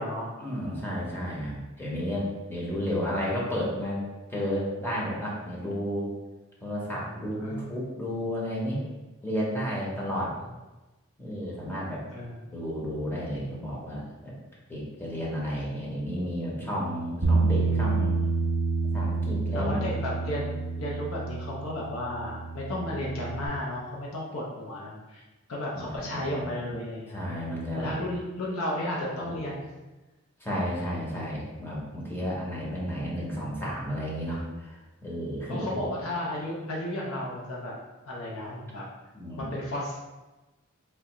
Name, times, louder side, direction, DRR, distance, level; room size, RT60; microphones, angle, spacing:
voice 1, 0.4-4.0 4.3-6.1 6.6-8.8 9.2-10.3 11.2-12.0 12.5-14.3 14.7-18.2 18.8-19.8 25.7-26.7 27.1-27.9 29.2-29.5 30.4-35.7 39.1-39.5, equal, 10° left, -5 dB, 0.7 m, -32 dB
voice 2, 6.9-7.8 10.1-10.2 12.1-12.4 17.5-18.0 19.5-25.2 25.5-27.3 27.8-29.6 35.5-37.8 38.1-38.8 39.4-40.0, left 1 dB, 75° left, -3 dB, 0.6 m, -34 dB
Bass guitar, 17.2-23.5, right 4 dB, 70° right, 0.5 m, -28 dB
3.2 x 2.4 x 2.9 m, 1.1 s
head